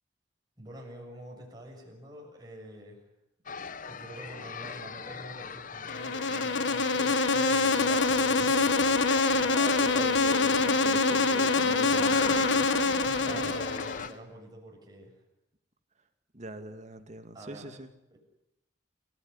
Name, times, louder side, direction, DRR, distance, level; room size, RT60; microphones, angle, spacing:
voice 1, 0.6-3.0 3.9-8.6 13.2-15.2 17.3-17.7 18.1-18.2, right 1 dB, 20° right, 0 dB, 7.0 m, -46 dB
sound 1, 3.5-14.1, left 5 dB, 45° left, 1.0 m, -40 dB
Insect, 5.9-14.1, left 3 dB, 80° left, 1.6 m, -25 dB
voice 2, 9.5-13.6 16.3-17.9, right 1 dB, 40° right, 8 dB, 2.3 m, -42 dB
29.0 x 16.5 x 9.9 m, 0.88 s
head